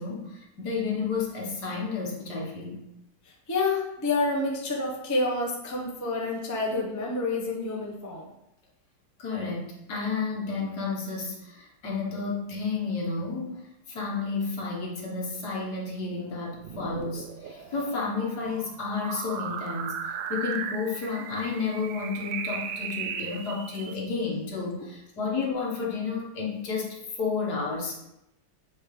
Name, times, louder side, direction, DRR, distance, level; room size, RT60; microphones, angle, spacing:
voice 1, 0.0-2.8 9.2-19.9 20.3-26.9 27.1-28.0, left 4 dB, 65° left, -2 dB, 2.0 m, -31 dB
voice 2, 3.5-8.3, left 3 dB, 15° left, -1 dB, 0.8 m, -28 dB
sound 1, 16.5-23.9, right 7 dB, 90° right, 1.3 m, -37 dB
7.8 x 3.7 x 4.9 m, 0.86 s
omnidirectional pair, 1.9 m